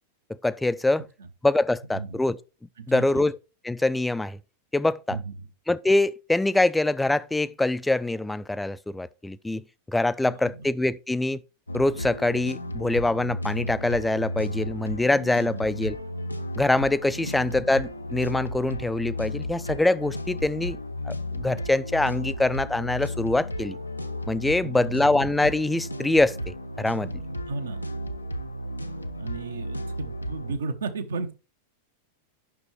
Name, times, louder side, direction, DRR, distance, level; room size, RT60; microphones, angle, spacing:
voice 1, 0.4-1.0 1.4-2.4 2.9-3.4 3.6-4.4 4.7-5.2 5.7-11.4 11.7-16.0 16.6-20.8 21.1-23.8 24.3-27.1, left 2 dB, 5° left, 0.4 m, -24 dB
voice 2, 2.8-3.3 5.1-5.5 10.2-10.6 15.4-15.6 24.6-24.9 27.5-27.8 29.2-31.3, right 4 dB, 65° right, 0.9 m, -34 dB
sound 1, 11.7-30.6, left 1 dB, 80° left, 0.6 m, -34 dB
9.2 x 6.1 x 3.3 m
figure-of-eight pair, 90°, 0 cm